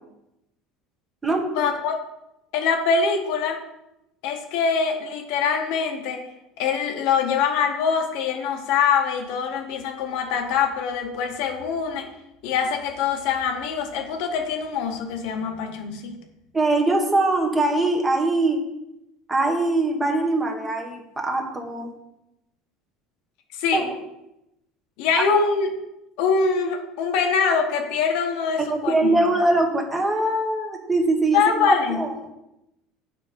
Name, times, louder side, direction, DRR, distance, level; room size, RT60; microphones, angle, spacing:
voice 1, 1.5-2.0 2.5-3.6 4.2-6.3 6.6-12.1 12.4-16.2 23.5-23.9 25.0-25.7 26.2-29.2 31.3-32.0, left 6 dB, 70° left, 4 dB, 1.0 m, -24 dB
voice 2, 16.5-18.6 19.3-21.9 23.7-23.8 28.6-32.1, right 2 dB, 15° right, 2 dB, 1.1 m, -22 dB
7.7 x 4.3 x 5.1 m, 0.87 s
cardioid pair, 140°, 0 cm